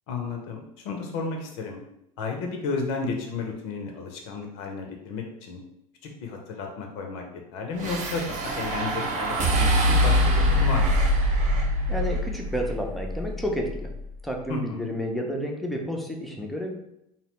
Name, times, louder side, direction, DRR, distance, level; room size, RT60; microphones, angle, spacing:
voice 1, 0.1-1.8 2.2-5.6 6.2-7.2 7.5-11.0 14.5-14.9, left 4 dB, 55° left, 2 dB, 0.5 m, -33 dB
sound 1, 7.8-14.2, equal, 40° right, 0.6 m, -24 dB
voice 2, 11.9-13.9 14.2-16.7, equal, ahead, 0 dB, 0.4 m, -30 dB
2.7 x 2.0 x 3.0 m, 0.81 s
hypercardioid pair, 75°, 19 cm